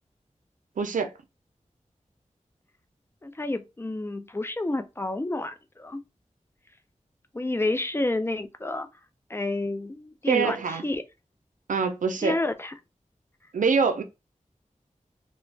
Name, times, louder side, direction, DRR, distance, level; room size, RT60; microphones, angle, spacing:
voice 1, 0.8-1.1 10.3-10.8 11.7-12.3 13.5-14.0, right 5 dB, 90° right, 0.4 m, -24 dB
voice 2, 3.2-6.0 7.3-8.9 9.3-11.0 12.2-12.7, left 2 dB, 20° left, 0.4 m, -29 dB
2.4 x 2.1 x 3.2 m
cardioid pair, 40°, 13 cm